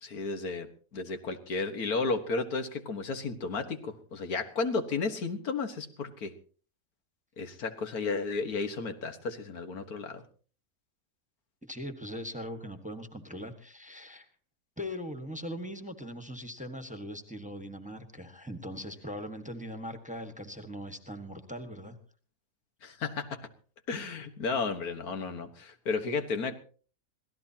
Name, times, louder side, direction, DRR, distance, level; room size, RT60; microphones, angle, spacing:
voice 1, 0.0-6.3 7.4-10.2 22.8-23.5 23.9-26.5, left 4 dB, 85° left, 7 dB, 2.0 m, -33 dB
voice 2, 11.7-14.3 14.8-22.0, equal, 5° right, 7 dB, 1.4 m, -40 dB
25.5 x 17.0 x 2.9 m, 0.41 s
omnidirectional pair, 1.5 m